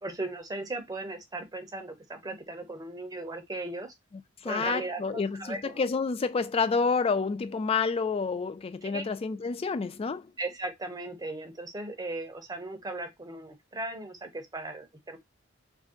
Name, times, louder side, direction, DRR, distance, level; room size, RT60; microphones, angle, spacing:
voice 1, 0.0-3.9 4.4-5.8 8.8-9.1 10.4-15.2, right 2 dB, 20° right, 0.7 m, -37 dB
voice 2, 4.4-10.3, left 4 dB, 30° left, 0.3 m, -29 dB
2.6 x 2.2 x 3.6 m
head